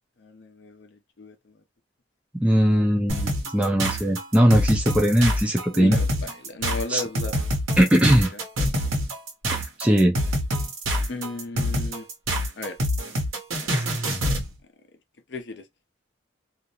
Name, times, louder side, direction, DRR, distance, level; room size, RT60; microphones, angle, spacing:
voice 1, 0.2-1.3 2.5-2.9 5.7-7.3 7.8-8.4 11.1-12.1 12.6-12.8 13.6-14.0 15.3-15.7, left 3 dB, 55° left, 0.5 m, -36 dB
voice 2, 2.3-6.0 6.9-7.0 7.8-8.3 9.8-10.1, equal, 5° right, 0.4 m, -19 dB
sound 1, 3.1-14.5, equal, 85° right, 1.0 m, -26 dB
2.5 x 2.0 x 2.8 m
head